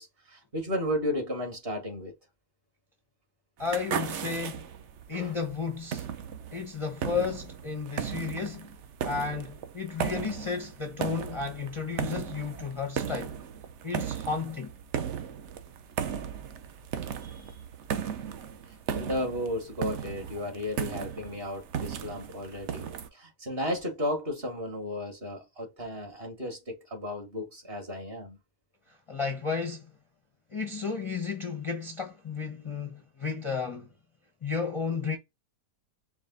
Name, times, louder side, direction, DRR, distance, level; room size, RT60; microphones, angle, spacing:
voice 1, 0.0-2.2 5.1-5.4 17.2-17.6 18.7-28.4, left 1 dB, 35° right, 1.6 m, -34 dB
voice 2, 3.6-4.6 5.1-6.1 6.5-8.7 9.0-13.4 13.8-14.7 28.9-29.9 30.5-33.9 34.4-35.2, left 5 dB, 35° left, 0.5 m, -33 dB
sound 1, 3.6-23.1, right 8 dB, 70° right, 0.7 m, -36 dB
4.8 x 2.2 x 3.8 m
omnidirectional pair, 1.8 m